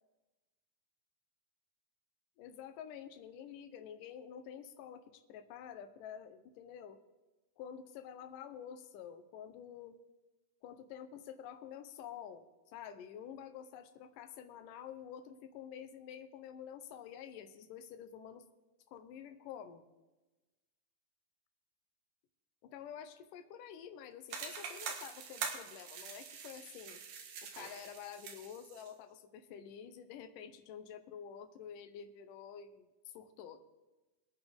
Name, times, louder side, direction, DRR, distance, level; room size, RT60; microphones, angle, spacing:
voice 1, 2.4-7.0 7.6-9.9 10.6-18.5 18.9-19.9 22.6-27.0 27.4-32.9 33.1-33.6, left 8 dB, 75° left, 9 dB, 2.1 m, -49 dB
sound 1, 24.3-28.9, right 6 dB, 65° right, 2.9 m, -44 dB
22.5 x 9.1 x 3.6 m, 1.1 s
omnidirectional pair, 4.7 m